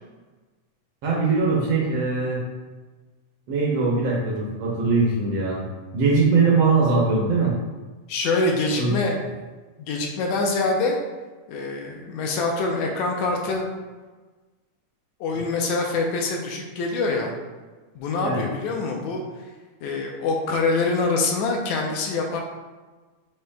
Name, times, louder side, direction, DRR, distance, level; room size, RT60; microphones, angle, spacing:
voice 1, 1.0-2.4 3.5-5.6 5.9-7.5 8.8-9.0 18.2-18.4, right 4 dB, 70° right, -4 dB, 1.6 m, -21 dB
voice 2, 8.1-9.2 9.8-11.0 11.5-13.7 15.2-17.3 18.0-19.2 19.8-22.4, left 3 dB, 80° left, 1 dB, 1.8 m, -25 dB
5.4 x 2.8 x 3.3 m, 1.3 s
omnidirectional pair, 3.3 m